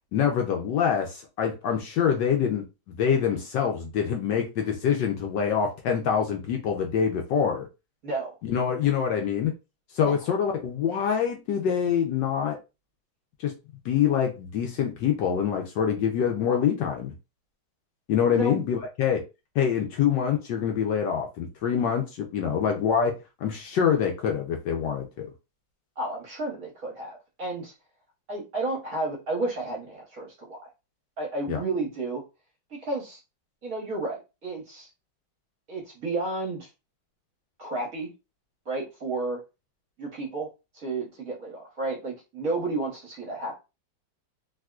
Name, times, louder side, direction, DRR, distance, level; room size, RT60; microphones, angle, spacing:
voice 1, 0.1-7.7 8.4-9.5 9.9-12.6 13.4-13.5 13.8-17.1 18.1-19.2 19.6-23.1 23.4-25.3 31.5-31.6, left 7 dB, 70° left, 1.1 m, -25 dB
voice 2, 8.0-8.3 8.8-8.9 10.0-10.1 18.3-18.5 26.0-27.7 28.3-30.6 31.2-32.2 32.7-33.2 33.6-34.9 35.7-36.7 37.6-38.1 38.7-39.4 40.0-40.5 40.7-43.6, right 2 dB, 50° right, 1.2 m, -32 dB
3.6 x 2.7 x 2.3 m
omnidirectional pair, 2.2 m